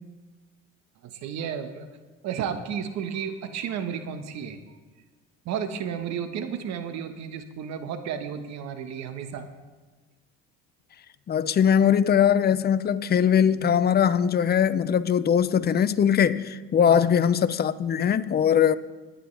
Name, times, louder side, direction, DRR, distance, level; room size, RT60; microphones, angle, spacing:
voice 1, 1.0-1.9 2.2-4.6 5.4-9.5 16.9-17.1, right 8 dB, 65° right, 1.4 m, -32 dB
voice 2, 11.3-18.7, left 8 dB, 35° left, 0.6 m, -21 dB
20.0 x 9.8 x 3.4 m
supercardioid pair, 95°, 30 cm